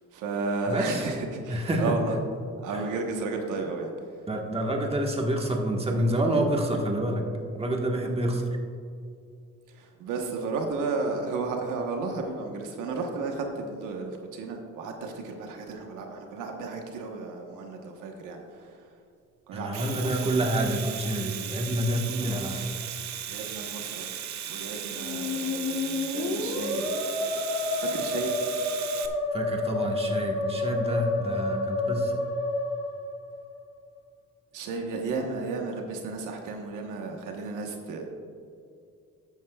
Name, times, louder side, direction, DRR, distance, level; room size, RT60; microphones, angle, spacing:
voice 1, 0.1-2.2 2.6-3.9 9.7-18.8 19.5-20.3 22.2-22.4 23.3-24.1 24.5-26.9 27.8-28.3 34.5-38.1, right 3 dB, 85° right, 2 dB, 1.2 m, -33 dB
voice 2, 0.7-1.1 1.5-1.9 2.7-2.8 4.3-7.2 7.5-8.4 19.5-22.7 29.3-32.1, right 1 dB, 20° right, 0 dB, 1.4 m, -28 dB
Domestic sounds home sounds, 19.6-29.1, right 10 dB, 65° right, 0.8 m, -37 dB
Musical instrument, 24.9-33.7, left 2 dB, 80° left, 1.3 m, -29 dB
12.5 x 9.0 x 2.3 m, 2.4 s
cardioid pair, 90°, 30 cm